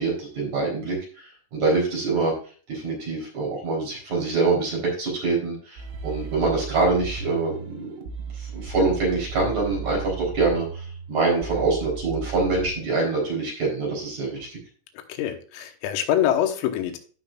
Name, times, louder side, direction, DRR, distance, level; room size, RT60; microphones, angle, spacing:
voice 1, 0.0-2.3 2.7-7.9 8.4-14.6, right 3 dB, 40° right, -2 dB, 4.4 m, -25 dB
sound 1, 5.8-12.7, right 5 dB, 75° right, 3.5 m, -35 dB
voice 2, 14.9-17.0, left 11 dB, 90° left, 5 dB, 3.9 m, -25 dB
16.0 x 5.9 x 2.4 m, 0.39 s
omnidirectional pair, 6.0 m